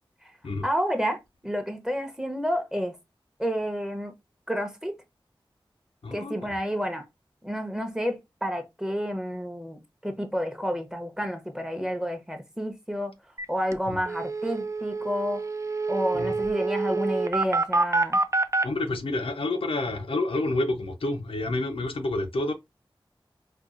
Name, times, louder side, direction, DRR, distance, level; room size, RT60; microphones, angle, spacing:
voice 1, 0.6-3.0 3.4-4.2 4.5-4.9 6.1-7.1 7.4-13.1 13.5-15.4 15.9-18.2, equal, 5° right, 0.8 m, -30 dB
voice 2, 6.0-6.3 13.9-14.0 16.1-16.4 18.6-22.5, left 2 dB, 85° left, 0.7 m, -29 dB
sound 1, 13.4-13.5 13.7-13.8 14.1-18.6, right 3 dB, 35° right, 0.4 m, -26 dB
4.4 x 2.3 x 2.5 m
wide cardioid pair, 60°, 9 cm